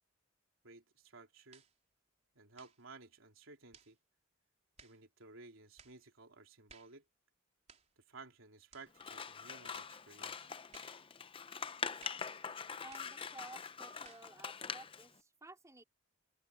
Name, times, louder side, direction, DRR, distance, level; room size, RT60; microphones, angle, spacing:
voice 1, 0.6-1.6 2.3-4.0 4.8-7.0 8.0-10.5, right 3 dB, 75° right, 3.3 m, -56 dB
sound 1, 1.5-1.8 2.5-2.8 3.7-4.0 4.8-5.0 5.8-6.0 6.7-7.0 7.7-7.9 8.7-8.9 9.7-10.0 10.7-11.0 12.0-12.3 12.9-13.2 14.0-14.3, right 6 dB, 35° right, 4.1 m, -60 dB
Scissors, 9.0-15.1, left 6 dB, 25° left, 0.6 m, -44 dB
voice 2, 12.8-15.8, right 2 dB, 15° right, 4.2 m, -54 dB
open air
head